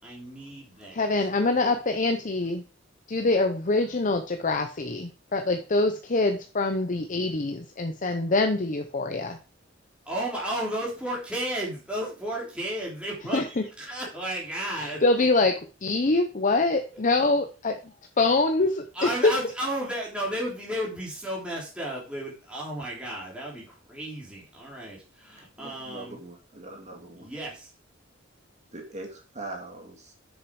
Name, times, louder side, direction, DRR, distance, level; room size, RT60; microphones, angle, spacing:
voice 1, 0.0-1.3 10.0-15.0 16.9-17.0 18.9-26.2 27.2-27.7, right 1 dB, 5° right, -5 dB, 3.3 m, -33 dB
voice 2, 0.9-2.6 3.1-9.4 13.3-13.6 14.8-17.8 18.2-19.3, left 2 dB, 40° left, 6 dB, 0.7 m, -24 dB
voice 3, 25.6-27.3 28.7-30.1, right 2 dB, 35° right, 1 dB, 2.1 m, -41 dB
7.7 x 6.8 x 4.7 m, 0.34 s
head